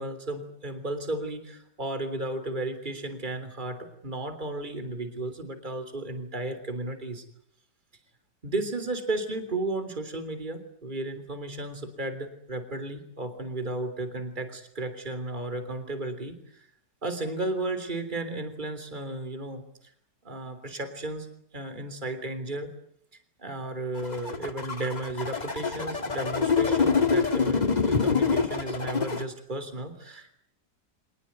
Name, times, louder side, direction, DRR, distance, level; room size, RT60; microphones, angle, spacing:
voice 1, 0.0-7.2 8.4-16.7 17.0-19.6 20.2-21.3 21.5-22.7 23.4-30.3, right 2 dB, 25° right, 9 dB, 3.6 m, -34 dB
sound 1, 24.0-29.2, left 5 dB, 25° left, 1.7 m, -25 dB
25.5 x 20.0 x 9.4 m, 0.68 s
omnidirectional pair, 1.9 m